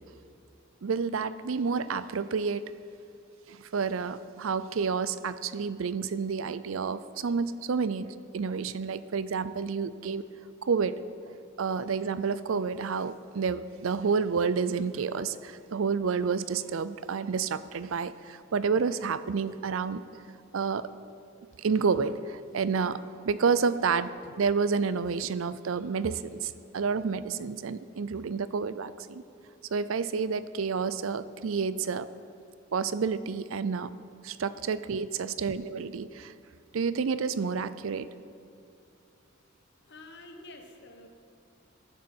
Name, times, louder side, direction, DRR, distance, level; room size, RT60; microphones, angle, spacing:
voice 1, 0.8-2.7 3.5-10.3 10.6-11.0 11.6-20.0 20.5-20.9 21.6-29.2 29.7-32.1 32.7-33.9 34.2-36.3 36.7-38.1, right 5 dB, 80° right, 15 dB, 0.5 m, -29 dB
voice 2, 39.8-41.1, left 2 dB, 60° left, 4 dB, 1.4 m, -48 dB
15.5 x 11.0 x 4.5 m, 2.7 s
head